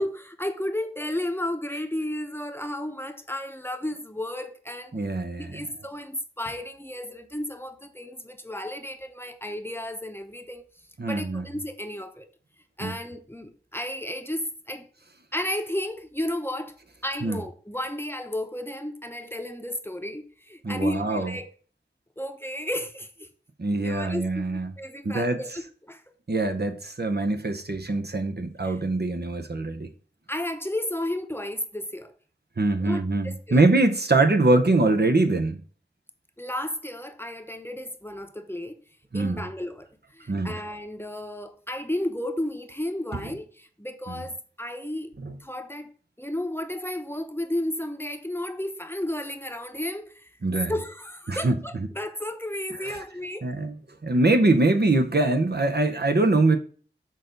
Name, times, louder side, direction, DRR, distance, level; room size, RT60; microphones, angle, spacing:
voice 1, 0.0-4.9 5.4-10.6 11.0-12.3 12.8-14.9 15.3-16.7 17.0-21.5 22.2-23.3 23.8-26.0 28.0-28.1 28.6-28.8 30.3-32.1 32.8-33.7 36.4-38.8 39.1-39.9 40.1-45.1 45.4-45.9 46.2-50.3 50.7-53.5, left 1 dB, 10° left, 0.8 m, -33 dB
voice 2, 4.9-5.7 11.0-11.4 12.8-12.9 17.2-17.4 20.6-21.3 23.6-24.7 25.0-25.4 26.3-29.9 32.6-35.6 39.1-39.4 40.3-40.6 43.1-43.3 44.1-44.2 45.2-45.4 50.4-50.7 51.3-51.6 52.8-53.0 53.4-53.8 54.0-56.6, right 2 dB, 60° right, 0.8 m, -23 dB
6.6 x 3.9 x 5.2 m
wide cardioid pair, 45°, 19 cm